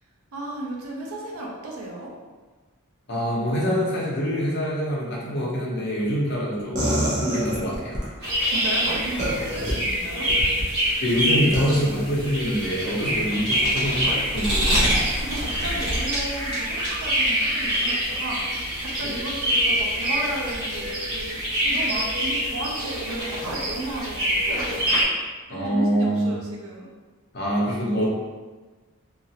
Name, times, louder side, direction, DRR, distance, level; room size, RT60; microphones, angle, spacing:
voice 1, 0.3-2.1 7.2-7.5 8.2-10.3 13.0-13.2 15.1-24.9 25.5-26.9, right 1 dB, 80° right, -2 dB, 0.6 m, -34 dB
voice 2, 3.1-8.0 9.4-9.6 11.0-14.9 19.0-19.1 25.5-26.3 27.3-28.1, equal, 50° left, -5 dB, 0.7 m, -25 dB
sound 1, 6.7-8.1 9.2-9.7 10.3-10.7 11.5-11.8, right 1 dB, 35° right, 0.7 m, -26 dB
sound 2, 8.2-25.0, equal, 50° right, 1.3 m, -25 dB
3.0 x 2.5 x 2.7 m, 1.3 s
head